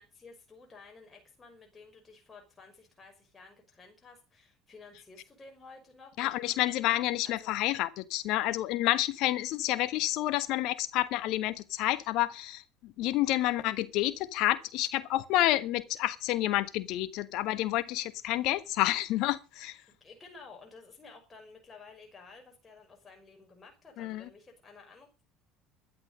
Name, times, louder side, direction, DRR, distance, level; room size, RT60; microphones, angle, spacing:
voice 1, 0.0-6.5 7.2-7.6 19.9-25.3, left 4 dB, 20° left, 5.7 m, -53 dB
voice 2, 6.2-19.8 24.0-24.3, left 15 dB, 55° left, 1.3 m, -29 dB
16.0 x 11.0 x 5.3 m
figure-of-eight pair, 60°, 0 cm